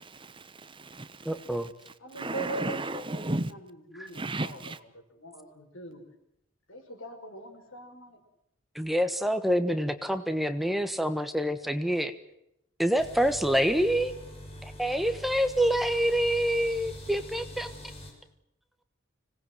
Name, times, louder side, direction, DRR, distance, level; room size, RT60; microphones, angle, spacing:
voice 1, 0.0-3.5 4.1-4.8, right 2 dB, 25° right, 1.1 m, -35 dB
voice 2, 1.2-1.7 4.0-4.1 8.7-12.1 12.8-14.1 14.6-17.7, equal, ahead, 1.3 m, -27 dB
voice 3, 2.0-6.0 6.7-8.2, right 2 dB, 90° left, 5.9 m, -42 dB
sound 1, 13.0-18.1, equal, 30° left, 6.7 m, -44 dB
25.5 x 19.0 x 7.8 m
head